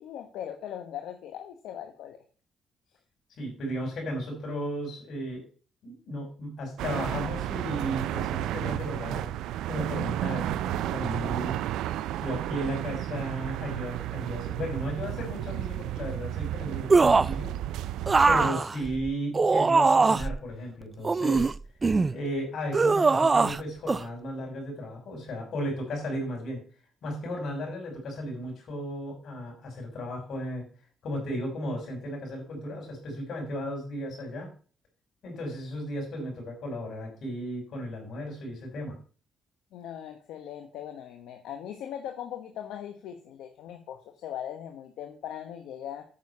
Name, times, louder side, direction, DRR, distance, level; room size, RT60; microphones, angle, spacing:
voice 1, 0.0-2.2 18.2-18.6 39.7-46.0, left 10 dB, 85° left, 5 dB, 1.2 m, -39 dB
voice 2, 3.4-5.4 5.8-9.3 9.7-11.6 12.2-17.5 18.3-21.5 22.1-26.6 27.0-30.7 31.0-34.5 35.2-39.0, equal, 70° left, 1 dB, 6.0 m, -35 dB
sound 1, 6.8-18.5, right 13 dB, 90° right, 0.4 m, -32 dB
sound 2, 16.9-17.4 18.1-20.4 21.0-22.1 22.7-23.6 23.9-24.0, right 4 dB, 30° right, 0.3 m, -22 dB
9.2 x 6.4 x 5.6 m, 0.39 s
cardioid pair, 90°, 0 cm